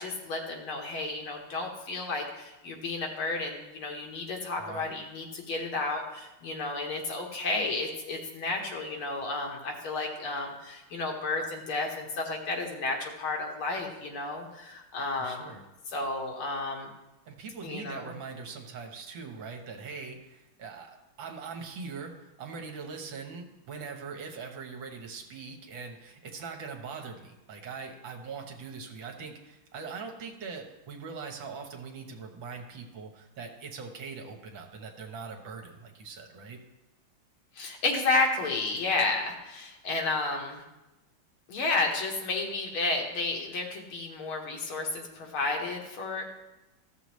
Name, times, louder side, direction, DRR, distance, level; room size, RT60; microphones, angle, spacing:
voice 1, 0.0-15.5 15.9-16.9 17.6-18.1 37.6-40.6 41.5-46.2, left 3 dB, 85° left, 1 dB, 2.2 m, -32 dB
voice 2, 4.6-4.9 15.2-15.7 17.3-36.6, right 5 dB, 70° right, 3 dB, 1.8 m, -42 dB
14.5 x 6.7 x 3.1 m, 1.0 s
omnidirectional pair, 2.3 m